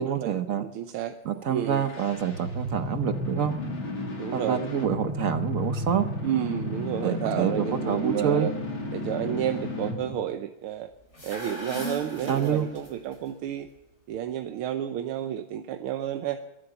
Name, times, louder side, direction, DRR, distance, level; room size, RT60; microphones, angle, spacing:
voice 1, 0.0-0.7 1.3-3.5 4.3-6.1 7.0-8.5 12.3-12.7, right 8 dB, 65° right, 9 dB, 0.8 m, -27 dB
voice 2, 0.6-1.2 1.5-1.9 4.1-4.6 6.2-8.5 8.9-10.9 11.2-13.7 14.1-16.4, right 11 dB, 90° right, 8 dB, 1.7 m, -31 dB
sound 1, 1.5-10.2, left 2 dB, 70° left, 3.7 m, -33 dB
sound 2, 11.0-13.2, equal, 30° left, 5.3 m, -37 dB
22.5 x 8.9 x 6.9 m, 0.98 s
omnidirectional pair, 2.3 m